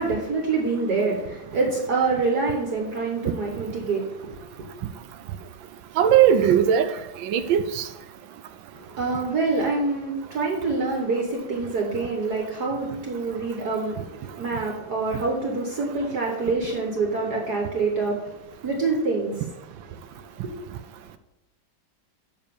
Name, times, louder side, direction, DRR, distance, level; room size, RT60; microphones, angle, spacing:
voice 1, 0.0-4.7 8.7-18.3 18.6-19.5 19.9-20.0, right 3 dB, 55° right, 0 dB, 1.6 m, -26 dB
voice 2, 6.0-6.9 7.2-7.9, right 9 dB, 75° right, 11 dB, 1.2 m, -18 dB
7.3 x 5.4 x 6.8 m, 0.95 s
omnidirectional pair, 2.2 m